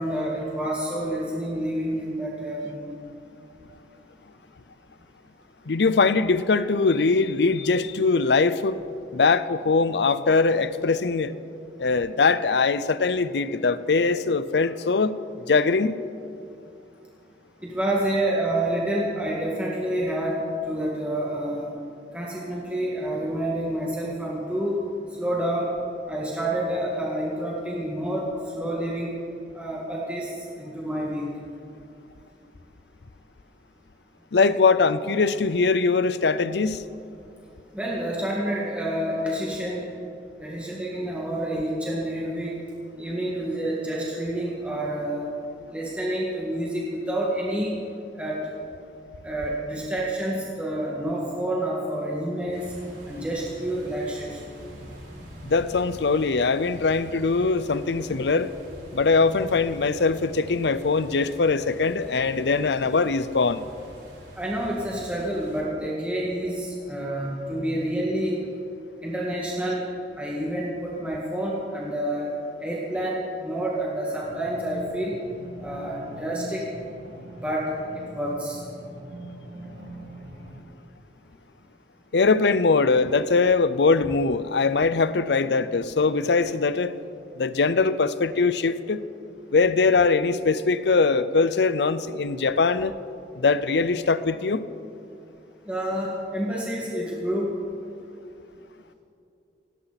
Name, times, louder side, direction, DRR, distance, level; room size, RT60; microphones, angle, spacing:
voice 1, 0.0-2.9 17.6-21.7 22.1-24.8 25.2-25.7 26.1-28.3 28.6-29.1 29.5-30.3 30.6-31.3 37.7-39.9 40.4-42.6 43.0-45.3 45.7-47.7 48.2-48.5 49.2-52.7 53.1-54.4 64.4-68.4 69.0-69.8 70.2-72.3 72.6-75.2 75.6-76.6 77.4-78.6 95.7-97.5, right 1 dB, 5° right, -5 dB, 2.0 m, -28 dB
voice 2, 5.7-8.8 9.1-11.3 11.8-15.2 15.5-16.0 34.3-36.8 55.4-58.5 58.9-63.7 82.1-86.9 87.4-89.0 89.5-92.9 93.3-94.7, left 4 dB, 80° left, 14 dB, 0.6 m, -22 dB
sound 1, 52.5-65.6, equal, 90° right, 4.3 m, -45 dB
sound 2, 74.2-80.6, right 1 dB, 65° right, 2.9 m, -42 dB
18.0 x 17.5 x 4.2 m, 2.6 s
head